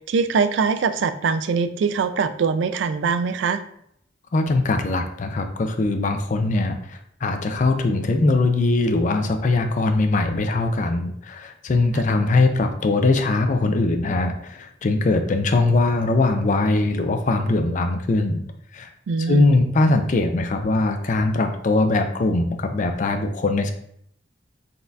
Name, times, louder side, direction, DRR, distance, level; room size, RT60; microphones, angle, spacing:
voice 1, 0.1-3.6 19.1-19.6, right 5 dB, 70° right, 11 dB, 0.3 m, -22 dB
voice 2, 4.3-18.4 18.7-18.9 19.3-23.7, left 2 dB, 40° left, 6 dB, 0.4 m, -21 dB
4.0 x 3.5 x 2.7 m, 0.70 s
head